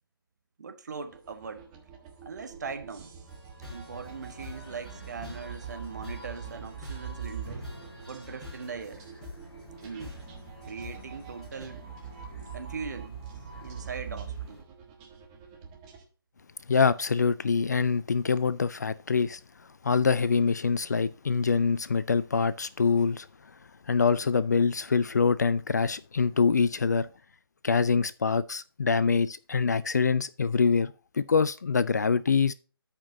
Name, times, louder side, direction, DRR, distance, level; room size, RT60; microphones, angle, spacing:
voice 1, 0.6-1.6 2.2-3.1 3.7-7.7 8.1-9.0 9.8-10.2 10.7-11.9 12.5-13.2 13.6-14.6, right 5 dB, 45° right, 1.3 m, -40 dB
sound 1, 1.0-16.0, right 7 dB, 15° right, 1.2 m, -44 dB
sound 2, 3.3-11.6, left 3 dB, 5° left, 3.9 m, -47 dB
sound 3, 3.9-14.6, equal, 30° left, 4.7 m, -50 dB
voice 2, 16.7-19.4 19.8-23.3 23.9-27.1 27.6-30.9 31.2-32.5, left 5 dB, 45° left, 0.4 m, -25 dB
13.0 x 5.2 x 2.7 m
figure-of-eight pair, 145°, 13 cm